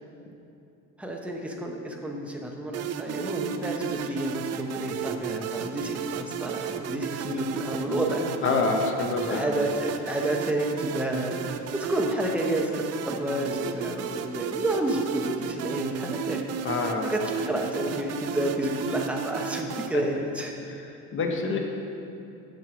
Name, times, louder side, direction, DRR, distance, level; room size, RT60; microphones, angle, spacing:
voice 1, 1.0-8.3 9.3-11.4 11.7-16.4 17.0-20.5, right 1 dB, 5° right, 0 dB, 1.0 m, -30 dB
sound 1, 2.7-19.9, right 8 dB, 55° right, 0.5 m, -34 dB
voice 2, 8.4-9.5 16.6-17.1 21.1-21.6, left 4 dB, 40° left, 2 dB, 1.2 m, -26 dB
7.8 x 6.8 x 6.2 m, 2.7 s
cardioid pair, 125°, 32 cm